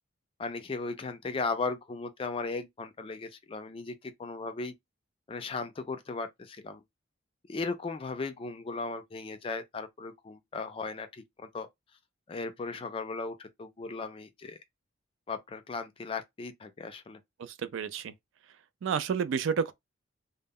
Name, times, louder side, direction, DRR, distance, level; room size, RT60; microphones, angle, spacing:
voice 1, 0.4-4.7 5.3-6.8 7.5-11.7 12.3-14.6 15.3-17.2, left 4 dB, 25° left, 0.3 m, -37 dB
voice 2, 17.4-18.1 18.8-19.7, right 6 dB, 75° right, 0.3 m, -30 dB
2.1 x 2.1 x 3.5 m
head